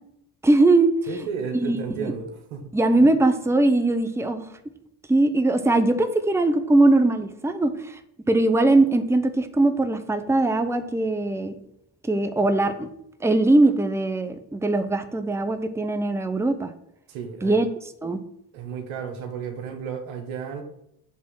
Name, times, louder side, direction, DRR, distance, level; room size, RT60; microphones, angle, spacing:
voice 1, 0.4-0.9 1.5-2.1 2.7-4.5 5.1-8.0 8.3-11.6 12.0-12.9 13.2-16.7 17.4-17.7 18.0-18.2, right 2 dB, 5° right, 8 dB, 0.8 m, -21 dB
voice 2, 1.1-2.6 17.1-17.5 18.5-20.6, right 6 dB, 85° right, 5 dB, 1.3 m, -33 dB
7.4 x 3.6 x 6.1 m, 0.75 s
supercardioid pair, 60°, 47 cm